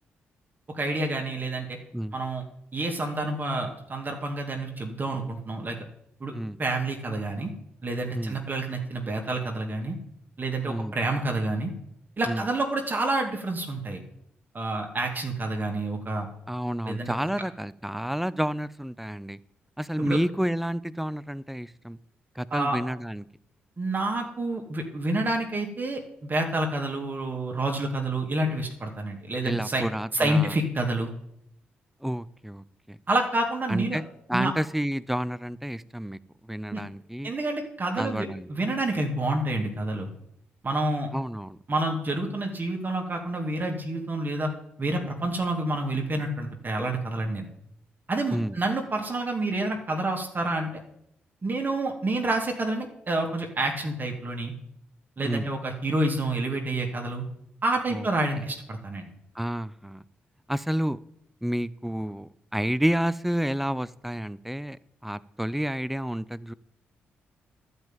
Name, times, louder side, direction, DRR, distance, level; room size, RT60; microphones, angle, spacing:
voice 1, 0.7-1.8 2.1-2.4 2.7-5.8 6.2-6.3 6.6-7.5 7.8-10.0 10.4-11.7 12.2-14.0 14.5-16.3 16.9-17.1 20.0-20.2 22.5-22.8 23.8-29.8 30.1-31.1 33.1-34.0 34.3-34.5 36.7-36.8 37.2-40.1 40.6-41.1 41.7-44.5 44.8-47.5 48.1-50.7 51.4-54.5 55.2-57.2 57.6-59.1, right 2 dB, 40° right, 2 dB, 2.5 m, -28 dB
voice 2, 16.5-19.4 19.8-22.0 22.4-23.2 29.4-30.6 32.0-33.0 33.7-36.2 36.5-37.3 38.0-38.5 41.1-41.6 48.3-48.6 55.2-55.5 57.9-58.1 58.3-58.4 59.3-60.0 60.5-61.0 61.4-64.8 65.0-66.5, equal, 5° right, 18 dB, 0.6 m, -30 dB
12.0 x 5.6 x 9.0 m, 0.76 s
hypercardioid pair, 45°, 5 cm